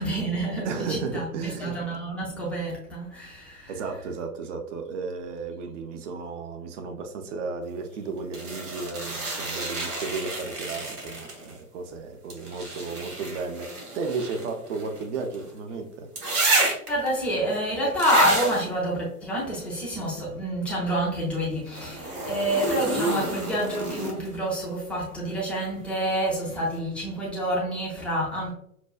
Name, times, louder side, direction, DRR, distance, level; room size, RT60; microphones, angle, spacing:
voice 1, 0.0-3.8 16.9-28.5, right 1 dB, 5° left, 0.4 m, -28 dB
voice 2, 0.6-1.8 3.7-16.1, right 4 dB, 50° right, 0.7 m, -34 dB
sound 1, 8.3-11.6 12.3-15.5 16.2-17.1 18.0-18.7 21.7-24.4 26.3-26.4, right 2 dB, 70° right, 1.5 m, -30 dB
6.0 x 2.2 x 2.3 m
figure-of-eight pair, 105°, 47 cm